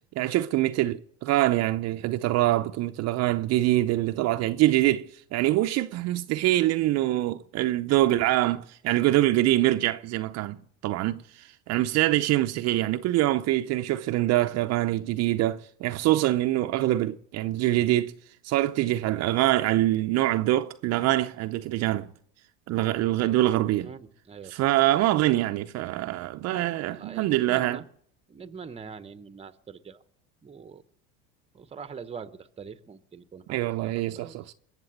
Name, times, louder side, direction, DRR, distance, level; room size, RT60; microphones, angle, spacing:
voice 1, 0.2-10.6 10.8-18.2 18.4-22.1 22.7-23.9 24.5-27.8 33.5-34.5, right 15 dB, 50° right, 0.7 m, -24 dB
voice 2, 24.3-24.7 26.8-27.8 28.3-30.0 30.4-30.8 31.5-34.4, right 6 dB, 20° right, 0.9 m, -43 dB
22.0 x 7.6 x 8.6 m
supercardioid pair, 110°, 32 cm